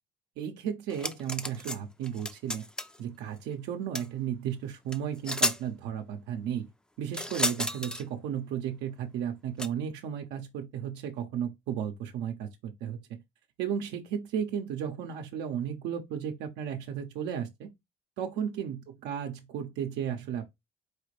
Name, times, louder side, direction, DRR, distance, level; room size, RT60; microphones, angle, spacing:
voice 1, 0.4-2.7 3.0-6.7 7.0-13.2 13.6-17.7 18.2-20.4, right 9 dB, 90° right, 0.7 m, -34 dB
sound 1, 0.9-1.8 2.0-3.0 3.9-4.1 4.9-5.0 5.2-5.6 7.1-8.0 9.6-9.7, left 1 dB, 5° left, 0.4 m, -31 dB
4.7 x 2.4 x 3.2 m
cardioid pair, 110°, 17 cm